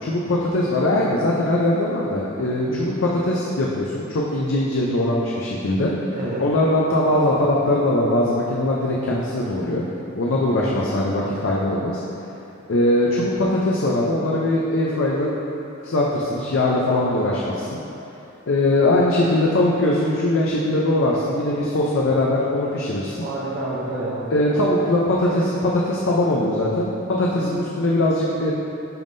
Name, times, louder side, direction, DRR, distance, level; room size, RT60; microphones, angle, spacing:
voice 1, 0.0-5.9 6.4-9.8 10.2-12.0 12.7-15.3 15.8-17.8 18.5-23.2 24.3-28.5, left 1 dB, 65° left, -4 dB, 0.5 m, -21 dB
voice 2, 2.7-3.0 6.1-6.4 10.6-10.7 16.9-17.2 18.9-19.0 23.2-24.3 27.3-27.6, right 2 dB, 50° right, -7 dB, 0.6 m, -29 dB
10.5 x 3.6 x 2.6 m, 3.0 s
head